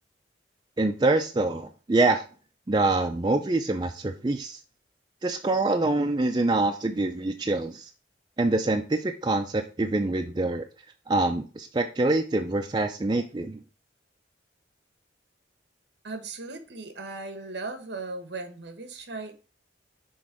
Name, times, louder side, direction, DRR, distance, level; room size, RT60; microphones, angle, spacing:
voice 1, 0.8-2.2 2.7-4.6 5.2-7.9 8.4-10.6 11.1-13.6, right 2 dB, 25° right, 0.4 m, -25 dB
voice 2, 16.0-19.3, right 3 dB, 65° right, 1.1 m, -37 dB
6.3 x 3.6 x 4.6 m
head